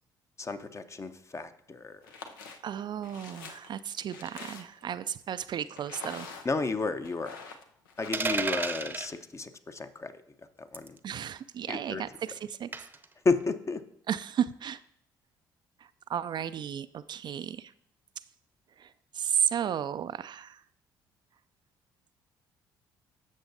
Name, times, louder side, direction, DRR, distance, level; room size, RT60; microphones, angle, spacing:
voice 1, 0.4-2.2 6.4-7.3 8.0-10.2 10.6-11.0 11.7-12.0 13.2-13.8, left 3 dB, 25° left, 10 dB, 0.8 m, -32 dB
sound 1, 2.0-2.6 3.0-4.9 5.8-6.7 7.0-8.1, left 5 dB, 80° left, 0.7 m, -45 dB
voice 2, 2.6-6.3 11.0-12.7 14.1-14.8 16.1-17.7 18.8-20.6, right 9 dB, 45° right, 13 dB, 0.3 m, -33 dB
sound 2, 8.1-9.1 10.7-11.0 12.7-13.0, right 3 dB, 20° right, 0.7 m, -31 dB
12.5 x 7.0 x 2.7 m, 0.72 s
hypercardioid pair, 50°, 11 cm